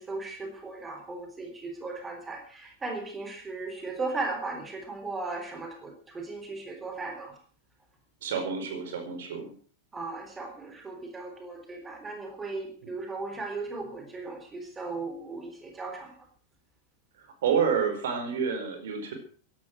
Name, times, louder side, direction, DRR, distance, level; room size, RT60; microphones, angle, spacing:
voice 1, 0.0-7.3 9.9-16.2, right 3 dB, 15° right, 4 dB, 3.9 m, -37 dB
voice 2, 8.2-9.5 17.4-19.1, right 6 dB, 60° right, 5 dB, 4.8 m, -28 dB
16.5 x 11.5 x 6.3 m, 0.43 s
figure-of-eight pair, 90°, 0 cm